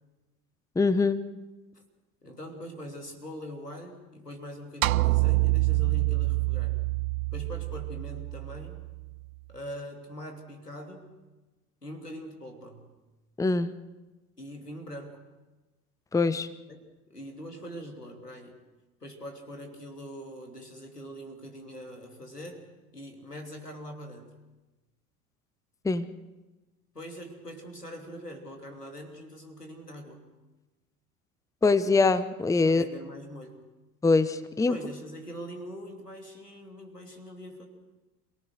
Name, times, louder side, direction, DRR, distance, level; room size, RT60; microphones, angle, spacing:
voice 1, 0.8-1.2 13.4-13.7 16.1-16.5 25.8-26.1 31.6-32.8 34.0-34.8, left 3 dB, 5° left, 15 dB, 0.9 m, -23 dB
voice 2, 2.2-6.8 7.3-8.8 9.5-11.1 11.8-12.9 14.4-15.2 16.7-16.8 17.1-18.6 19.0-22.7 22.9-24.3 26.9-30.2 32.6-33.6 34.7-37.7, equal, 90° left, 3 dB, 3.1 m, -43 dB
sound 1, 4.8-9.2, right 21 dB, 65° right, 0.6 m, -26 dB
28.0 x 18.0 x 6.5 m, 1.1 s
figure-of-eight pair, 70°, 46 cm